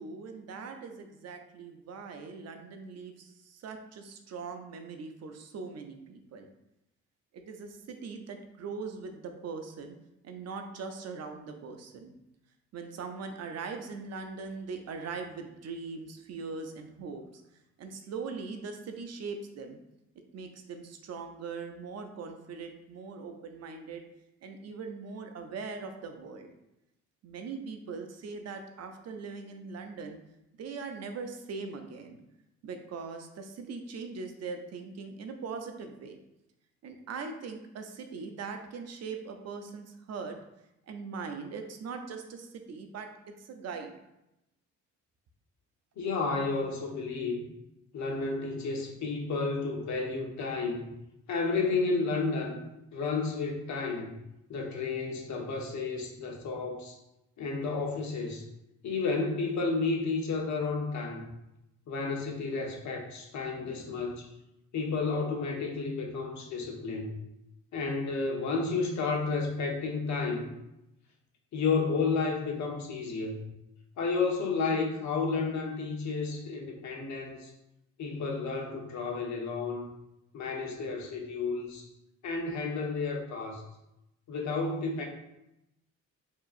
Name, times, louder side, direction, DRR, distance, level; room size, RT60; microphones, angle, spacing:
voice 1, 0.0-6.5 7.3-10.0 10.2-12.1 12.7-17.4 17.8-19.8 20.3-24.0 24.4-26.5 27.2-30.2 30.5-32.2 32.6-36.2 36.8-40.4 40.9-44.0, right 4 dB, 60° right, 5 dB, 0.6 m, -41 dB
voice 2, 46.0-47.5 47.9-50.9 51.3-52.6 52.9-54.2 54.5-57.0 57.4-58.5 58.8-61.3 61.9-64.3 64.7-67.1 67.7-70.5 71.5-73.5 74.0-77.5 78.0-79.9 80.3-81.9 82.2-83.6 84.3-85.0, left 4 dB, 70° left, 1 dB, 0.9 m, -31 dB
4.6 x 2.9 x 2.5 m, 0.89 s
cardioid pair, 90°, 30 cm